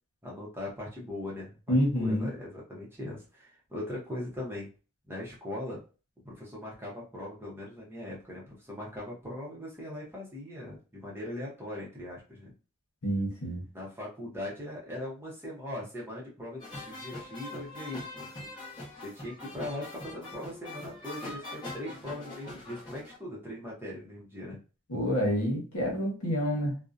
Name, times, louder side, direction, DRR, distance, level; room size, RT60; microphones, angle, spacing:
voice 1, 0.2-4.7 5.1-5.8 6.2-12.5 13.7-18.3 19.0-24.6, left 1 dB, 10° right, -5 dB, 0.7 m, -40 dB
voice 2, 1.7-2.3 13.0-13.7 24.9-26.8, equal, 75° left, -1 dB, 1.0 m, -28 dB
sound 1, 16.6-23.2, left 2 dB, 20° left, 0.9 m, -42 dB
2.6 x 2.1 x 2.4 m, 0.34 s
head